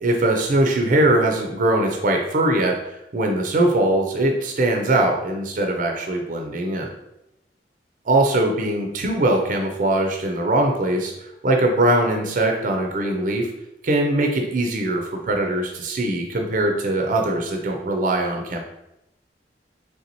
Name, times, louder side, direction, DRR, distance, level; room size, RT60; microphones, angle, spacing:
voice 1, 0.0-2.8 3.1-6.9 8.1-11.1 11.4-13.5 13.8-18.6, right 1 dB, 50° right, 2 dB, 0.5 m, -21 dB
4.0 x 3.3 x 2.9 m, 0.86 s
head